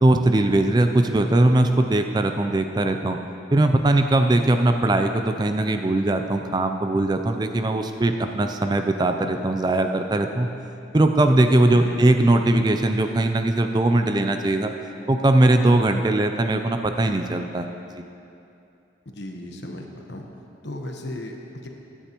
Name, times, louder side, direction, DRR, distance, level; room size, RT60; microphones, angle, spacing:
voice 1, 0.0-3.2 3.5-10.5 10.9-14.7 15.1-17.7 17.9-18.0, right 2 dB, 20° right, 6 dB, 0.4 m, -20 dB
voice 2, 11.7-12.2 19.0-20.3 20.6-21.7, left 1 dB, 65° left, 2 dB, 1.1 m, -36 dB
16.0 x 10.0 x 3.0 m, 2.7 s
head